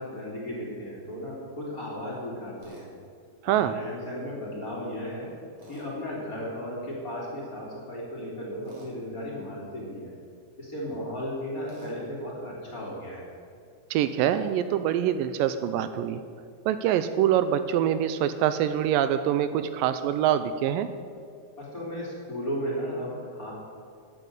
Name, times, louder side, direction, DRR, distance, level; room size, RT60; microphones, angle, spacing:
voice 1, 0.0-2.9 3.4-5.3 5.7-10.1 10.6-13.3 21.6-23.5, equal, 25° left, -4 dB, 3.2 m, -35 dB
Tools, 2.6-2.9 5.6-5.9 8.6-8.9 11.7-12.0, right 1 dB, 65° right, 4.8 m, -48 dB
voice 2, 3.4-3.8 13.9-16.2 16.7-20.9, right 10 dB, 80° right, 11 dB, 2.2 m, -25 dB
11.5 x 10.0 x 8.3 m, 2.3 s
omnidirectional pair, 4.0 m